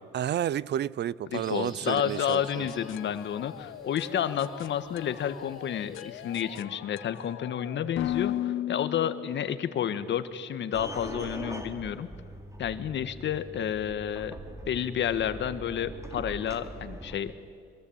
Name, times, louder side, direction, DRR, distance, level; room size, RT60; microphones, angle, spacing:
voice 1, 0.1-2.7, right 10 dB, 60° right, 0.6 m, -31 dB
voice 2, 1.3-12.1 12.6-14.3 14.7-17.3, left 9 dB, 65° left, 1.6 m, -30 dB
sound 1, 1.3-6.6, left 1 dB, ahead, 5.0 m, -52 dB
sound 2, 2.0-9.8, left 13 dB, 85° left, 0.8 m, -37 dB
sound 3, 10.7-17.2, right 1 dB, 15° right, 3.6 m, -42 dB
24.5 x 22.5 x 8.8 m
cardioid pair, 90°, 20 cm